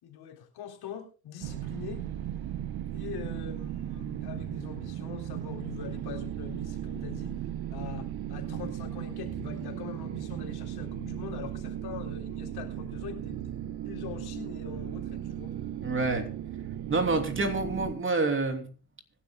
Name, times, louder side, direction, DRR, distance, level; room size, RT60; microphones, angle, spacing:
voice 1, 0.0-2.1 2.9-7.3 7.7-13.4 13.8-15.5, left 9 dB, 55° left, 3.7 m, -43 dB
sound 1, 1.4-17.9, right 11 dB, 55° right, 1.2 m, -36 dB
voice 2, 15.8-16.3 16.9-18.7, right 3 dB, 25° right, 3.0 m, -27 dB
25.0 x 11.5 x 2.2 m
hypercardioid pair, 60°, 44 cm